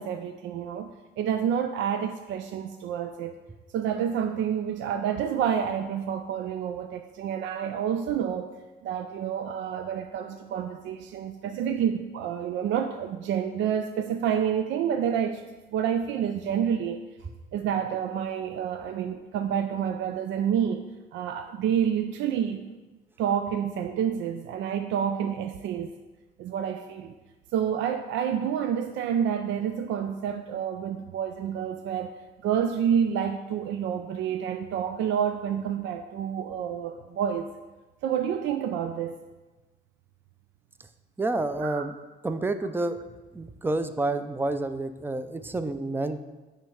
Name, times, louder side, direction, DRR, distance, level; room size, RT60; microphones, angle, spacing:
voice 1, 0.0-3.3 3.7-8.5 8.8-15.4 15.7-17.0 17.5-20.8 21.1-22.7 23.2-25.9 26.4-27.1 27.5-32.1 32.4-37.5 38.0-39.2 41.6-41.9, right 8 dB, 80° right, 7 dB, 0.4 m, -28 dB
voice 2, 41.2-41.9 42.2-43.0 43.3-46.2, right 2 dB, 10° right, 10 dB, 0.5 m, -29 dB
9.3 x 3.3 x 6.3 m, 1.2 s
cardioid pair, 110°, 19 cm